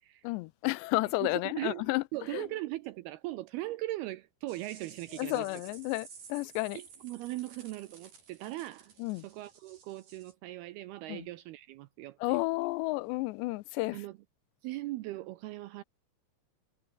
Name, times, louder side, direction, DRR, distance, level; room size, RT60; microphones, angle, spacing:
voice 1, 0.2-2.0 2.3-2.5 5.2-6.8 9.0-9.3 11.1-11.3 12.2-14.0, left 22 dB, 85° left, 2.7 m, -32 dB
voice 2, 1.2-5.5 6.7-8.9 9.2-12.4 13.9-14.2 14.6-15.8, right 17 dB, 80° right, 2.4 m, -39 dB
sound 1, 4.5-10.3, right 6 dB, 50° right, 6.2 m, -54 dB
omnidirectional pair, 5.1 m